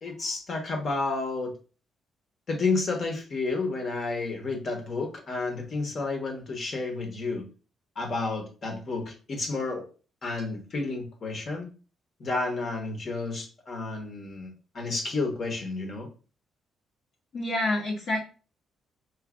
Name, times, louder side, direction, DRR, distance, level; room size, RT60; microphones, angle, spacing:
voice 1, 0.0-1.5 2.5-7.5 8.0-9.8 10.2-11.7 12.2-16.1, left 3 dB, 45° left, 2 dB, 1.2 m, -31 dB
voice 2, 17.3-18.2, left 1 dB, 65° left, -5 dB, 1.1 m, -27 dB
4.8 x 2.6 x 2.5 m, 0.36 s
cardioid pair, 90°, 0 cm